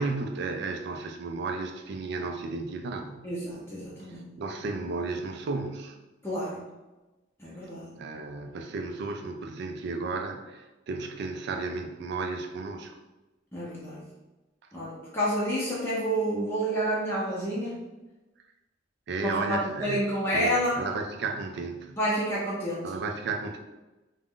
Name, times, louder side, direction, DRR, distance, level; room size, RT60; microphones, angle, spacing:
voice 1, 0.0-3.3 4.1-6.0 8.0-13.0 19.1-20.1 20.3-22.0 22.8-23.6, right 3 dB, 65° right, 5 dB, 0.3 m, -33 dB
voice 2, 3.2-4.3 6.2-6.6 7.4-7.9 13.5-14.0 14.7-17.8 19.2-20.8 22.0-22.9, equal, 15° left, -8 dB, 0.5 m, -29 dB
2.4 x 2.0 x 3.6 m, 1.1 s
head